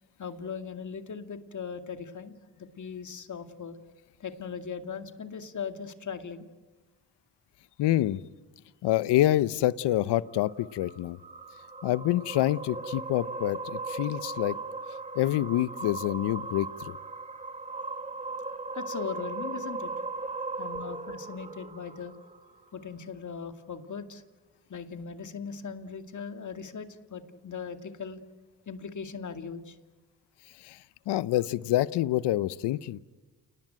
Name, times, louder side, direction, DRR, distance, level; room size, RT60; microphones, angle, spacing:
voice 1, 0.2-3.8 4.2-6.4 18.7-20.0 20.6-22.1 22.7-24.2 24.7-28.2 28.7-29.8, left 6 dB, 45° left, 8 dB, 2.3 m, -39 dB
voice 2, 7.8-8.2 8.8-11.2 11.8-14.6 15.1-17.0 30.6-30.8 31.1-33.0, left 14 dB, 80° left, 18 dB, 0.9 m, -27 dB
sound 1, 10.3-22.8, right 3 dB, 15° right, 1.8 m, -38 dB
29.0 x 19.0 x 9.1 m, 1.2 s
supercardioid pair, 65°, 41 cm